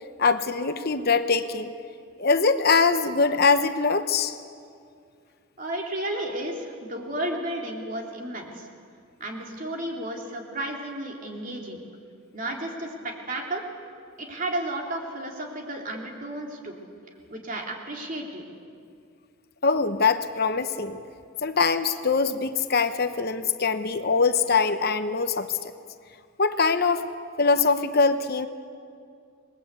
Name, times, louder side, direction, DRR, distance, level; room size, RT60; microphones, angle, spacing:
voice 1, 0.2-1.7 2.2-4.3 19.6-21.0 21.4-25.6 26.4-27.1 27.4-28.5, left 4 dB, 45° left, 9 dB, 0.9 m, -23 dB
voice 2, 5.6-8.7 9.2-11.9 12.3-13.6 14.2-16.7 17.3-18.4, right 1 dB, 40° right, 1 dB, 3.4 m, -33 dB
28.0 x 21.0 x 8.4 m, 2.3 s
head